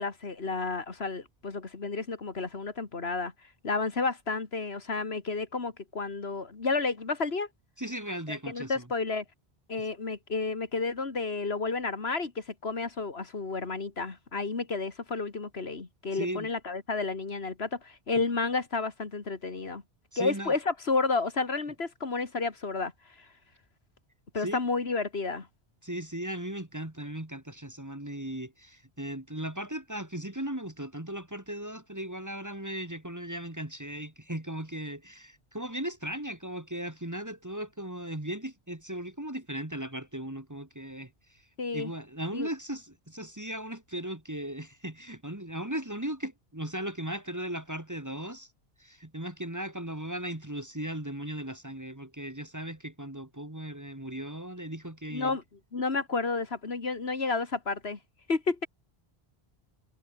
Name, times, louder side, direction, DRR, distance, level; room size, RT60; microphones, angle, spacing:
voice 1, 0.0-3.3 3.6-7.5 8.3-9.2 9.7-19.8 20.2-22.9 23.2-23.3 24.3-25.5 41.6-41.9 42.3-42.5 55.1-55.4 55.7-58.0 58.3-58.7, left 4 dB, 80° left, 2.4 m, -31 dB
voice 2, 7.8-8.9 16.1-16.5 20.1-20.5 24.4-24.6 25.8-41.4 41.7-48.5 48.8-55.4, right 1 dB, 15° right, 1.9 m, -37 dB
omnidirectional pair, 1.1 m